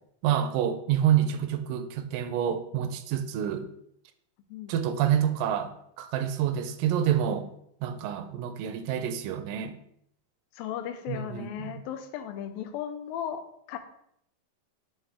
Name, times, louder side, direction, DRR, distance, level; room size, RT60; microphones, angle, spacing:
voice 1, 0.2-3.7 4.7-7.5 7.8-9.7 11.1-11.8, right 10 dB, 80° right, 9 dB, 2.1 m, -28 dB
voice 2, 10.5-13.8, left 9 dB, 90° left, 8 dB, 2.5 m, -36 dB
10.5 x 3.7 x 3.4 m, 0.72 s
omnidirectional pair, 4.0 m